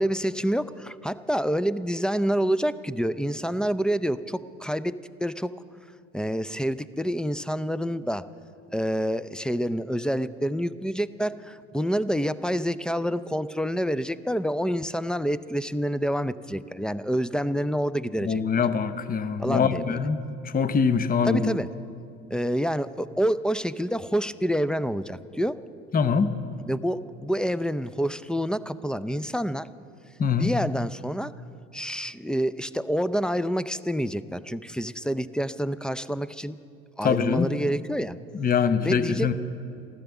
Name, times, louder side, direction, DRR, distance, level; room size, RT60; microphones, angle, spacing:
voice 1, 0.0-5.5 6.1-8.3 8.7-18.4 19.4-20.0 21.2-21.7 22.3-25.6 26.6-29.7 30.4-31.3 31.7-36.5 37.0-38.2 38.8-39.3, equal, 5° left, 15 dB, 0.4 m, -27 dB
voice 2, 18.2-21.5 25.9-26.3 30.2-30.5 37.0-37.5 38.3-39.3, left 6 dB, 30° left, 11 dB, 0.8 m, -24 dB
15.0 x 12.5 x 7.1 m, 2.5 s
hypercardioid pair, 75°, 31 cm